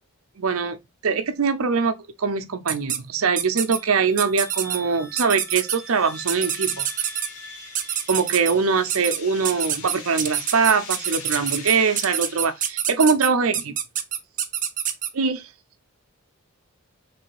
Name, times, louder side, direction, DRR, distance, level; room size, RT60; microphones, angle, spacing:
voice 1, 0.4-0.8 1.0-6.9 8.1-13.8 15.1-15.5, right 5 dB, 75° right, 0.7 m, -22 dB
sound 1, 2.7-3.0 3.4-3.8 4.2-4.8 5.2-5.8 6.3-7.3 7.8-8.5 8.9-9.2 9.4-15.1, right 10 dB, 40° right, 0.6 m, -26 dB
sound 2, 3.5-10.2, right 1 dB, 15° left, 1.0 m, -44 dB
sound 3, 5.0-12.8, left 5 dB, 80° left, 1.5 m, -42 dB
3.4 x 3.2 x 4.7 m
head